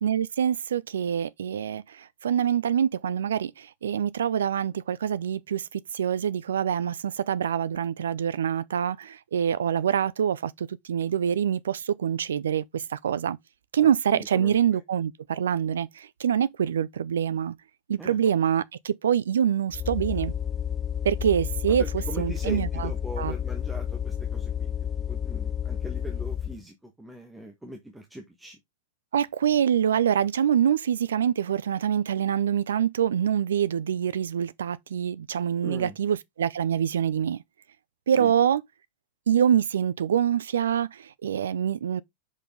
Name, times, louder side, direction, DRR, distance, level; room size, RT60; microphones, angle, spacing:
voice 1, 0.0-13.4 13.7-17.6 17.9-20.3 21.0-21.8 22.2-22.9 23.2-23.3 29.1-37.4 38.1-38.6 39.3-42.0, right 9 dB, 65° right, 0.4 m, -25 dB
voice 2, 13.8-14.6 18.0-18.2 21.7-24.7 25.1-28.6 35.6-35.9 38.2-38.3, right 1 dB, 5° right, 1.4 m, -41 dB
sound 1, 19.7-26.6, left 9 dB, 25° left, 0.3 m, -31 dB
6.3 x 5.3 x 3.7 m
figure-of-eight pair, 90°, 0 cm